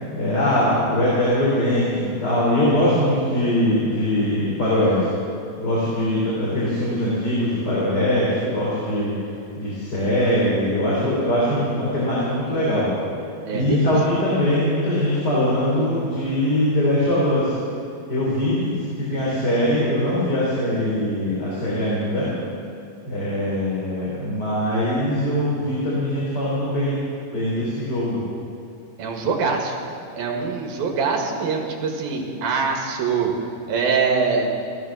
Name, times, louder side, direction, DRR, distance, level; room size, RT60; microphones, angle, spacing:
voice 1, 0.1-5.1 5.6-9.1 9.6-12.9 13.5-17.5 18.1-22.3 23.1-27.0 27.3-28.2, left 1 dB, 25° left, -7 dB, 3.6 m, -22 dB
voice 2, 13.5-13.9 29.0-29.8 30.2-33.3 33.7-34.5, right 5 dB, 75° right, 0 dB, 3.6 m, -23 dB
15.5 x 14.0 x 6.3 m, 2.6 s
omnidirectional pair, 4.4 m